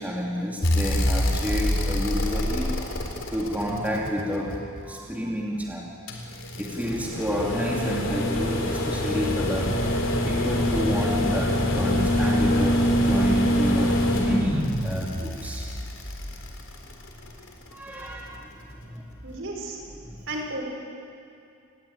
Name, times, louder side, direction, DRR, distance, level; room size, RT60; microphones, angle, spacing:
voice 1, 0.0-2.7 3.3-4.6 4.9-5.9 6.6-9.8 10.2-15.7 17.7-18.5 18.7-19.0 19.9-20.2, equal, 5° right, -3 dB, 2.8 m, -30 dB
sound 1, 0.6-4.8 6.1-17.3 18.8-18.9, equal, 60° left, 3.8 m, -25 dB
voice 2, 19.2-19.8 20.3-20.6, right 2 dB, 60° right, 1 dB, 5.7 m, -33 dB
29.0 x 20.5 x 8.9 m, 2.5 s
head